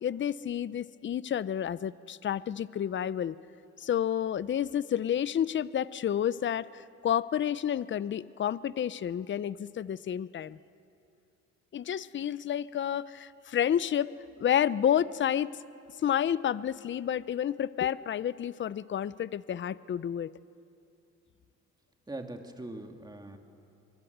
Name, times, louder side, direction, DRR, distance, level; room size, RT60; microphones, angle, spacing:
voice 1, 0.0-3.4 3.8-10.6 11.7-14.1 14.4-15.5 16.0-20.3, left 9 dB, 40° left, 18 dB, 0.6 m, -30 dB
voice 2, 22.1-23.4, right 2 dB, 15° right, 4 dB, 2.4 m, -41 dB
24.0 x 23.0 x 8.1 m, 2.6 s
cardioid pair, 90°, 30 cm